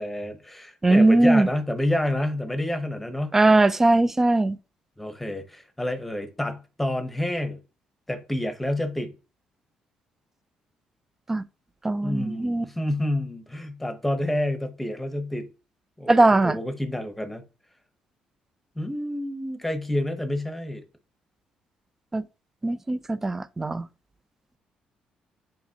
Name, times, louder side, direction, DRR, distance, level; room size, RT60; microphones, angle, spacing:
voice 1, 0.0-3.3 5.0-7.6 8.1-9.1 12.0-15.5 16.0-17.4 18.8-20.8, left 1 dB, 5° left, 0.9 m, -29 dB
voice 2, 0.8-1.5 3.3-4.6 11.3-11.5 11.8-12.7 16.1-16.6 22.1-22.2 22.6-23.9, right 2 dB, 15° right, 0.3 m, -20 dB
8.7 x 4.1 x 2.8 m
cardioid pair, 140°, 3 cm